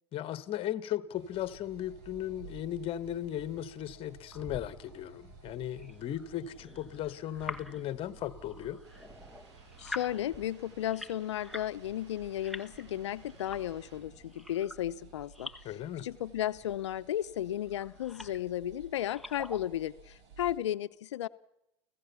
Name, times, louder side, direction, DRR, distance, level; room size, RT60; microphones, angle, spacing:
voice 1, 0.1-8.8 15.6-16.1, left 11 dB, 40° left, 1.6 m, -37 dB
sound 1, 1.1-20.6, right 5 dB, 55° right, 6.7 m, -55 dB
sound 2, 4.3-11.8 12.1-15.7 16.4-17.1 17.7-18.5 19.0-19.8, left 1 dB, ahead, 1.3 m, -47 dB
sound 3, 8.8-14.0, right 4 dB, 75° right, 7.8 m, -61 dB
voice 2, 9.8-15.5 16.0-21.3, left 12 dB, 85° left, 0.8 m, -34 dB
29.5 x 15.5 x 7.1 m
hypercardioid pair, 110°, 15 cm